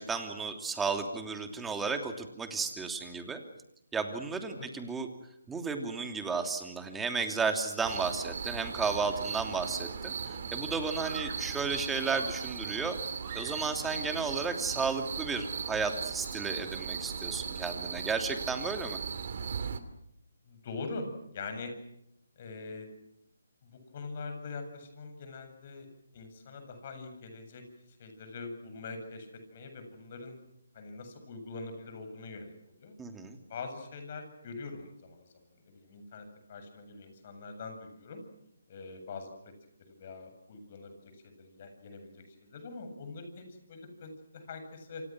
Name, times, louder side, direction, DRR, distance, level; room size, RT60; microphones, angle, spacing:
voice 1, 0.0-3.4 3.9-5.1 5.5-13.0 13.3-19.0 33.0-33.4, right 4 dB, 5° right, 5 dB, 2.9 m, -33 dB
voice 2, 4.5-4.9 20.5-21.1 21.3-21.7 22.4-22.9 23.6-25.9 26.1-27.6 28.0-30.4 30.7-32.5 32.8-33.0 33.5-35.3 35.7-38.2 38.7-39.3 40.0-45.0, left 3 dB, 40° left, 7 dB, 7.9 m, -43 dB
sound 1, 7.8-19.8, right 6 dB, 50° right, 2.8 m, -38 dB
Screaming, 11.0-11.6 12.2-13.9, right 6 dB, 35° right, 6.6 m, -47 dB
28.5 x 27.0 x 6.3 m, 0.77 s
figure-of-eight pair, 150°, 0 cm